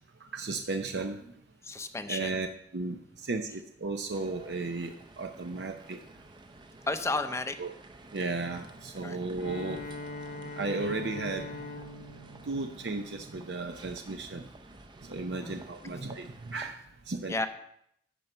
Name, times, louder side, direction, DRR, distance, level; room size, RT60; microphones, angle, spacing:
voice 1, 0.3-1.2 2.1-2.5 2.7-6.0 7.6-7.7 8.1-9.9 10.6-11.6 12.5-14.5 15.1-16.8 17.1-17.5, right 3 dB, 75° right, 5 dB, 0.7 m, -34 dB
voice 2, 1.6-2.3 6.9-7.6 9.0-9.2 15.3-15.6 17.3-17.5, left 2 dB, 15° left, 9 dB, 0.6 m, -32 dB
sound 1, 4.1-16.7, right 2 dB, 25° right, 0.7 m, -52 dB
Bowed string instrument, 9.3-13.6, left 2 dB, 75° left, 1.7 m, -42 dB
11.5 x 4.5 x 6.6 m, 0.73 s
head